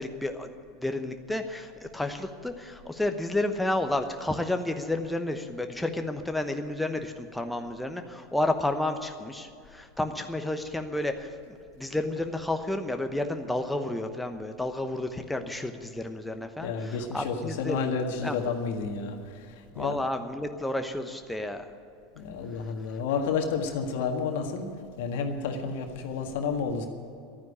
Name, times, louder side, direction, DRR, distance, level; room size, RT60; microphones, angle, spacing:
voice 1, 0.0-17.8 18.2-18.3 19.7-21.7, left 1 dB, 5° left, 6 dB, 1.0 m, -31 dB
voice 2, 16.6-20.0 22.1-26.9, left 5 dB, 70° left, 5 dB, 1.6 m, -31 dB
12.0 x 9.4 x 10.0 m, 2.4 s
hypercardioid pair, 85°, 0 cm